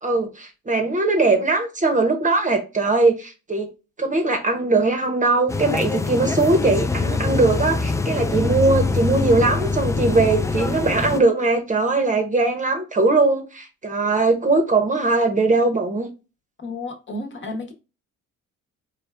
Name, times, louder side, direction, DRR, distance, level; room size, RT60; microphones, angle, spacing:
voice 1, 0.0-3.7 4.0-16.1, right 3 dB, 25° right, 0.8 m, -20 dB
sound 1, 5.5-11.2, left 3 dB, 10° left, 0.3 m, -24 dB
voice 2, 16.6-17.7, left 2 dB, 40° left, 1.1 m, -32 dB
4.2 x 2.3 x 3.3 m
cardioid pair, 90°, 30 cm